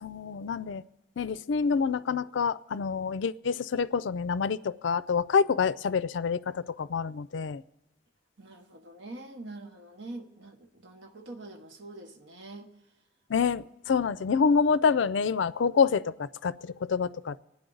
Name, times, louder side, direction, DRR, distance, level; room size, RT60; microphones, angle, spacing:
voice 1, 0.0-0.8 1.2-7.6 13.3-17.4, left 5 dB, 80° left, 16 dB, 0.4 m, -27 dB
voice 2, 8.4-12.9 13.9-14.1, right 2 dB, 75° right, 5 dB, 1.2 m, -45 dB
26.0 x 9.5 x 3.9 m, 0.94 s
head